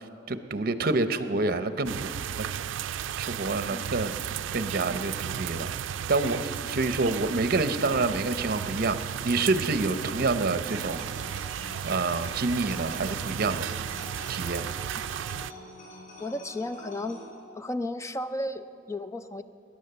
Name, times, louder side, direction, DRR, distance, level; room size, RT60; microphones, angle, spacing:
voice 1, 0.3-2.1 3.2-4.1 4.5-5.7 6.1-11.0 11.8-13.8 14.3-14.7, right 3 dB, 50° right, 10 dB, 0.8 m, -27 dB
sound 1, 1.9-15.5, right 9 dB, 90° right, 0.4 m, -34 dB
sound 2, 10.7-17.3, left 1 dB, 45° left, 3.8 m, -45 dB
voice 2, 16.2-17.2 17.5-19.4, left 1 dB, 15° left, 11 dB, 0.4 m, -33 dB
20.0 x 10.5 x 6.8 m, 2.6 s
head